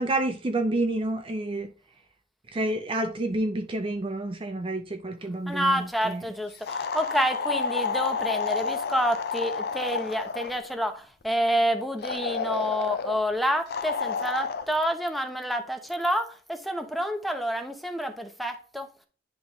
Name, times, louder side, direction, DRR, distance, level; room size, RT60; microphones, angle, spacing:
voice 1, 0.0-1.7 2.5-6.2, right 2 dB, 30° right, 0.5 m, -29 dB
voice 2, 5.5-18.9, equal, ahead, 0.9 m, -28 dB
sound 1, 6.7-10.6 12.0-13.2 13.7-14.7, left 5 dB, 60° left, 0.5 m, -30 dB
10.5 x 3.6 x 3.1 m
head